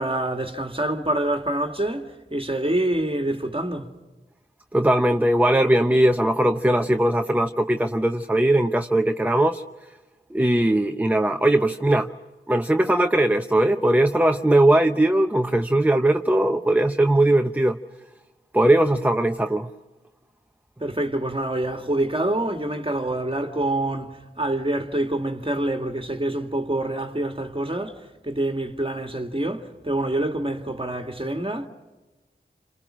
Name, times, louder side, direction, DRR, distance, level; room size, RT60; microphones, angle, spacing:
voice 1, 0.0-4.0 20.8-31.7, right 1 dB, 25° right, 2.0 m, -26 dB
voice 2, 4.7-9.6 10.3-12.1 12.5-17.8 18.5-19.7, right 1 dB, 10° right, 0.8 m, -20 dB
28.5 x 27.0 x 6.2 m
wide cardioid pair, 45°, 20 cm